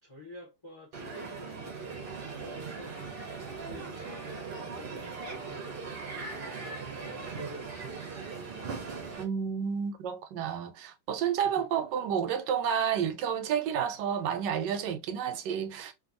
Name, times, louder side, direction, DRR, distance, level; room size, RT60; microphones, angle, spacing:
voice 1, 0.0-6.3 7.0-8.0 11.4-11.7, equal, 40° left, 0.4 m, -49 dB
Crowd, 0.9-9.2, right 4 dB, 55° right, 0.6 m, -39 dB
voice 2, 9.2-15.9, right 8 dB, 90° right, 1.2 m, -30 dB
2.6 x 2.6 x 2.5 m
omnidirectional pair, 1.8 m